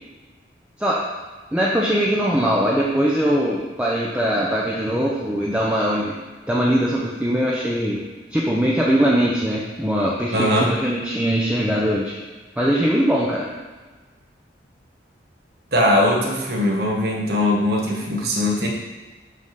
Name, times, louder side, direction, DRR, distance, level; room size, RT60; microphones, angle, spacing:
voice 1, 1.5-6.2 6.5-8.0 8.3-12.1 12.6-13.5, equal, 5° right, -5 dB, 0.7 m, -21 dB
voice 2, 10.3-10.8 15.7-18.7, left 1 dB, 60° right, -1 dB, 1.4 m, -20 dB
7.2 x 4.2 x 6.6 m, 1.3 s
head